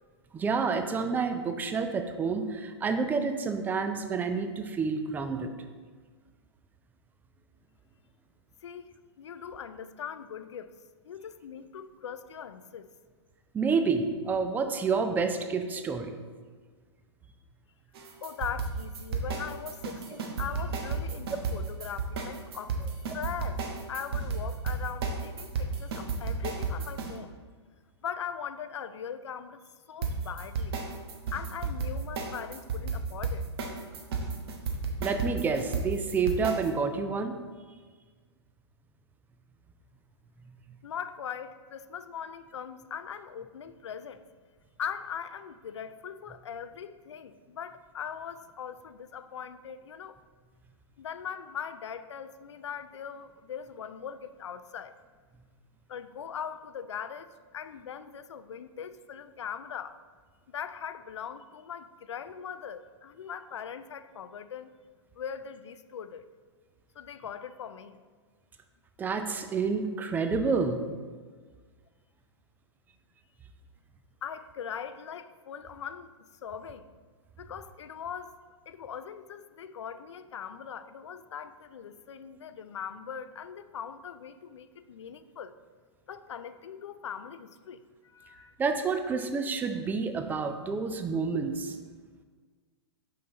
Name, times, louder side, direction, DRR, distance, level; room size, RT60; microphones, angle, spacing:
voice 1, 0.3-5.5 13.5-16.2 35.0-37.4 69.0-70.8 88.6-91.8, right 5 dB, 10° right, 7 dB, 0.4 m, -29 dB
voice 2, 8.6-10.7 11.0-12.9 18.2-22.8 23.1-23.6 23.9-27.3 28.0-29.6 29.9-30.8 31.3-33.5 40.8-44.3 44.8-50.2 51.0-54.9 55.9-60.0 60.5-64.7 65.2-66.2 67.0-68.0 74.2-76.1 76.4-76.9 77.4-78.4 78.7-85.5 86.1-87.8 88.0-88.5, left 8 dB, 75° left, 12 dB, 0.4 m, -40 dB
sound 1, 18.0-27.1 30.0-36.7, right 4 dB, 55° right, 1.0 m, -32 dB
5.6 x 5.4 x 3.9 m, 1.5 s
hypercardioid pair, 120°, 15 cm